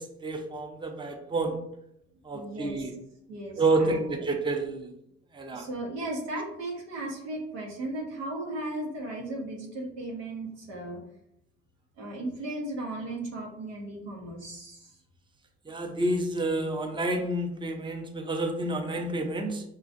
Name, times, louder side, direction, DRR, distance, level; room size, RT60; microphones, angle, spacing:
voice 1, 0.0-1.6 2.3-2.9 3.6-4.9 5.3-5.6 15.7-19.6, right 2 dB, 15° right, 3 dB, 0.7 m, -29 dB
voice 2, 2.3-2.9 3.3-4.2 5.5-11.0 12.0-14.9, right 2 dB, 90° right, -2 dB, 1.0 m, -36 dB
5.4 x 2.4 x 2.5 m, 0.77 s
hypercardioid pair, 60°, 32 cm